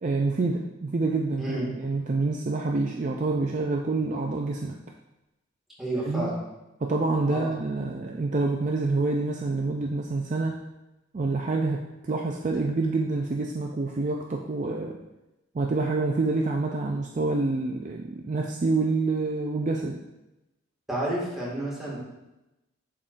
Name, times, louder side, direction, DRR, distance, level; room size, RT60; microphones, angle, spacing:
voice 1, 0.0-4.8 5.9-6.3 6.8-10.6 11.1-15.0 15.5-20.0, right 3 dB, 35° right, 1 dB, 0.4 m, -27 dB
voice 2, 1.4-1.7 5.8-6.4 7.3-7.5 20.9-22.0, right 1 dB, ahead, -7 dB, 1.9 m, -30 dB
11.0 x 3.7 x 2.5 m, 0.96 s
head